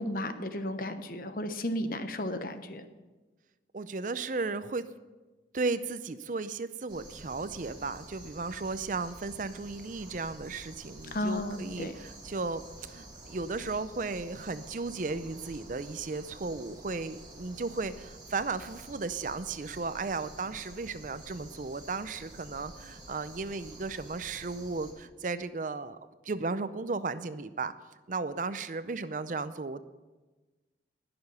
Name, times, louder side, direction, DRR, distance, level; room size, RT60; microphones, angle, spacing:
voice 1, 0.0-2.8 11.1-11.9, left 1 dB, 50° left, 9 dB, 1.0 m, -34 dB
voice 2, 3.7-4.8 5.5-26.0 26.2-27.7 28.1-29.8, right 3 dB, 45° right, 13 dB, 0.5 m, -35 dB
sound 1, 6.9-24.9, right 1 dB, 25° right, 2.4 m, -49 dB
20.0 x 7.0 x 5.5 m, 1.2 s
head